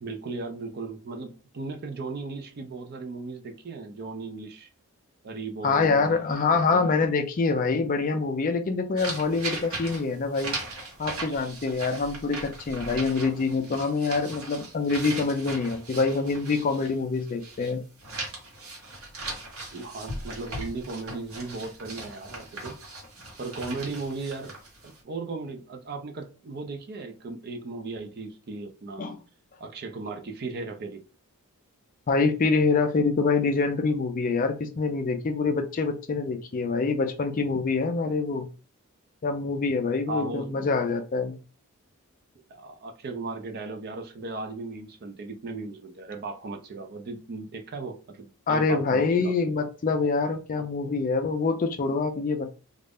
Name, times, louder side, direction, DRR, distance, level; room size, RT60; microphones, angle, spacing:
voice 1, 0.0-4.7 5.2-6.9 19.7-22.8 23.4-24.5 24.8-29.1 29.6-31.0 40.1-40.7 42.5-49.3, right 3 dB, 45° right, 0.4 m, -37 dB
voice 2, 5.6-10.6 11.0-17.8 29.0-29.2 32.1-38.5 39.2-41.4 48.5-52.5, left 4 dB, 35° left, 0.4 m, -25 dB
sound 1, 9.0-17.7 18.0-25.0, right 2 dB, 70° right, 1.1 m, -39 dB
2.4 x 2.0 x 3.4 m
head